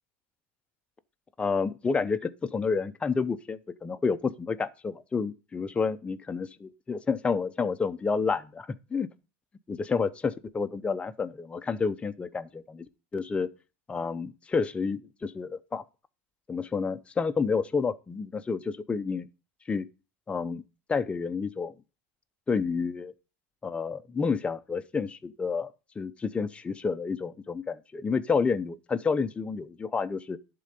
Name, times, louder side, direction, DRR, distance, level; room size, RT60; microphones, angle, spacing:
voice 1, 1.4-9.1 9.7-12.9 13.1-13.5 13.9-15.8 16.5-19.3 19.7-19.9 20.3-20.6 20.9-21.7 22.5-23.1 23.6-25.7 26.0-30.4, left 5 dB, 15° left, 0.7 m, -29 dB
11.0 x 3.8 x 6.8 m
supercardioid pair, 125°, 7 cm